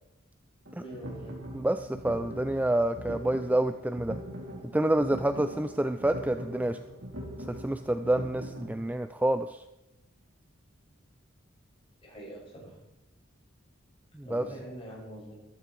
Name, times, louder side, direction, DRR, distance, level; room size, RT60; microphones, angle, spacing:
sound 1, 0.7-8.8, equal, 70° right, 4.3 m, -41 dB
voice 1, 0.8-1.3 12.0-12.8 14.2-15.4, right 1 dB, 30° left, -4 dB, 6.8 m, -44 dB
voice 2, 1.5-4.2 4.7-6.8 7.5-9.6 14.1-14.4, right 1 dB, 10° right, 9 dB, 0.4 m, -28 dB
15.0 x 13.5 x 4.6 m, 0.91 s
head